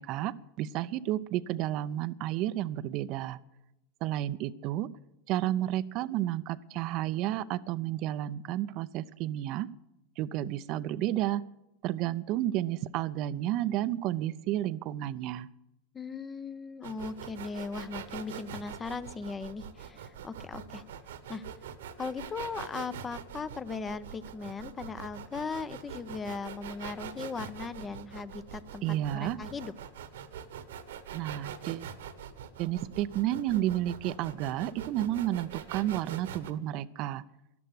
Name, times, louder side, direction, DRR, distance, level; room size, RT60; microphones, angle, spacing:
voice 1, 0.0-3.4 4.0-4.9 5.3-9.7 10.2-11.4 11.8-15.5 28.8-29.4 31.1-31.9 32.6-37.2, right 13 dB, 45° right, 15 dB, 0.6 m, -31 dB
voice 2, 15.9-20.8 21.3-21.4 22.0-29.7, left 4 dB, 20° left, 15 dB, 0.7 m, -38 dB
sound 1, 16.8-36.5, right 8 dB, 65° right, 1.2 m, -43 dB
13.0 x 12.0 x 7.8 m, 0.88 s
figure-of-eight pair, 85°, 0 cm